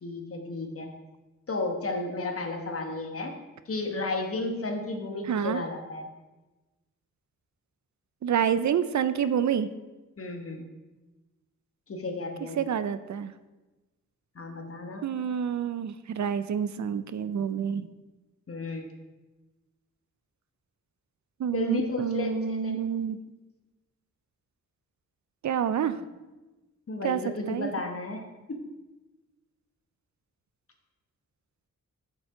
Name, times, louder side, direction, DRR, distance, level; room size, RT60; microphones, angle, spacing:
voice 1, 0.0-0.9 1.5-3.3 3.7-6.1 10.2-10.6 11.9-12.6 14.3-15.1 18.5-18.9 21.5-22.7 26.9-28.6, left 2 dB, 45° left, 3 dB, 1.2 m, -33 dB
voice 2, 5.3-5.6 8.2-9.7 12.6-13.3 15.0-17.9 21.4-23.2 25.4-26.0 27.0-27.2 27.5-27.7, right 8 dB, 65° right, 13 dB, 0.5 m, -28 dB
7.0 x 6.8 x 4.8 m, 1.1 s
wide cardioid pair, 150°, 31 cm